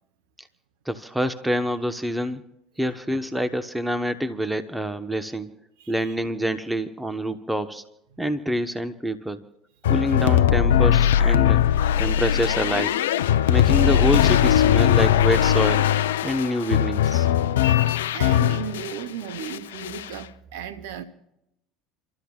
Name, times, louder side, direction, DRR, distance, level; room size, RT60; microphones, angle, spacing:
voice 1, 0.9-2.4 2.8-5.5 5.9-7.8 8.2-9.4 9.9-11.6 12.0-13.0 13.5-15.9 16.2-17.3, equal, 5° right, 1.1 m, -26 dB
voice 2, 5.8-6.1 18.1-21.0, right 9 dB, 80° right, 1.0 m, -35 dB
sound 1, 9.8-19.0 19.3-20.1, left 10 dB, 85° left, 0.6 m, -20 dB
29.0 x 13.5 x 2.4 m
hypercardioid pair, 80°, 0 cm